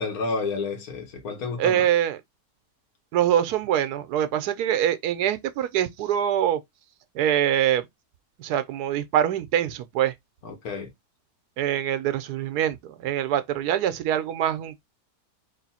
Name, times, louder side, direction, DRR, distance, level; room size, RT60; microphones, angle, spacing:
voice 1, 0.0-1.8 10.4-10.9, left 4 dB, 70° left, 1.5 m, -30 dB
voice 2, 1.6-2.2 3.1-6.6 7.1-7.9 8.4-10.1 11.6-14.8, right 10 dB, 80° right, 1.2 m, -24 dB
3.6 x 2.5 x 4.1 m
omnidirectional pair, 1.7 m